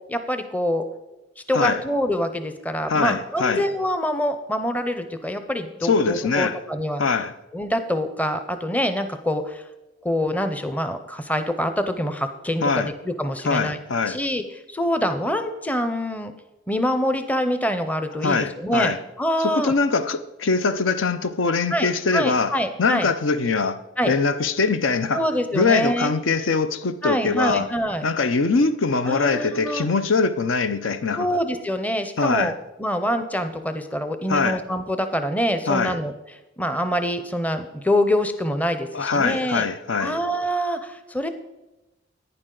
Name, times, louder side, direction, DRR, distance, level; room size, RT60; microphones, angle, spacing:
voice 1, 0.1-0.8 1.5-7.0 7.5-9.6 10.0-13.8 14.1-16.3 16.7-19.7 21.7-23.1 24.0-24.1 25.1-26.1 27.0-28.1 29.0-29.9 31.1-36.1 36.6-39.7 40.0-41.3, equal, 10° left, 0.6 m, -25 dB
voice 2, 2.9-3.7 5.8-6.6 7.0-7.3 12.6-12.9 13.4-14.2 18.2-19.0 19.4-23.8 24.1-25.2 25.5-27.7 28.0-31.3 32.2-32.5 34.3-34.6 35.7-36.0 38.9-40.2, left 4 dB, 75° left, 0.6 m, -22 dB
11.0 x 9.7 x 3.9 m
head